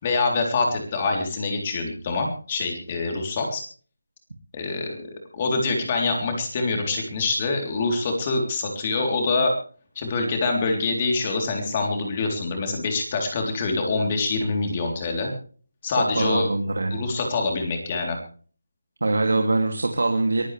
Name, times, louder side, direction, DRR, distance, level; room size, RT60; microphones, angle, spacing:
voice 1, 0.0-3.6 4.5-9.5 10.0-15.3 15.8-16.5 16.9-18.2, left 3 dB, 20° left, 2 dB, 3.6 m, -25 dB
voice 2, 16.2-17.1 19.0-20.5, right 2 dB, 75° right, 3 dB, 2.7 m, -23 dB
22.5 x 15.5 x 3.4 m, 0.43 s
figure-of-eight pair, 175°, 0 cm